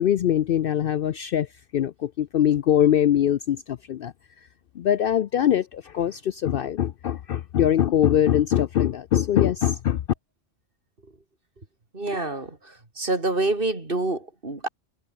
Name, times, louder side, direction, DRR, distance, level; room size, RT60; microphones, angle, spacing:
voice 1, 0.0-1.5 1.7-4.1 4.8-10.0, left 10 dB, 60° left, 0.7 m, -22 dB
voice 2, 11.9-12.6 13.0-14.7, right 2 dB, 50° right, 3.7 m, -26 dB
omnidirectional pair, 1.2 m